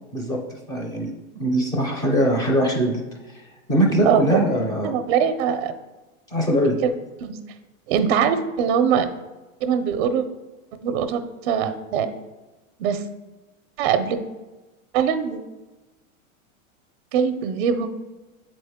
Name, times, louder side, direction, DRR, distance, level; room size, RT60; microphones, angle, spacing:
voice 1, 0.7-1.1 1.4-3.0 3.3-3.4 3.7-4.9 6.3-6.8, equal, 10° left, 1 dB, 0.4 m, -21 dB
voice 2, 4.0-4.4 4.8-5.7 7.2-7.4 7.9-9.1 9.6-10.2 10.7-12.1 12.8-13.0 13.8-14.2 14.9-15.4 17.1-17.9, right 7 dB, 50° right, 9 dB, 0.5 m, -22 dB
7.1 x 4.1 x 3.5 m, 1.1 s
supercardioid pair, 145°, 43 cm